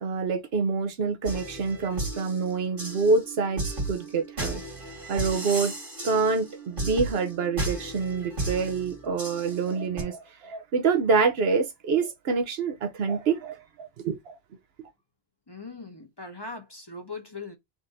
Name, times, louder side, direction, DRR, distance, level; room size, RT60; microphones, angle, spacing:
voice 1, 0.0-4.6 5.1-5.7 6.0-14.4, right 4 dB, 75° right, 1.0 m, -26 dB
sound 1, 1.3-10.0, right 2 dB, 55° right, 2.0 m, -35 dB
voice 2, 15.5-17.6, left 3 dB, 25° left, 0.8 m, -40 dB
3.7 x 2.6 x 4.1 m
omnidirectional pair, 1.0 m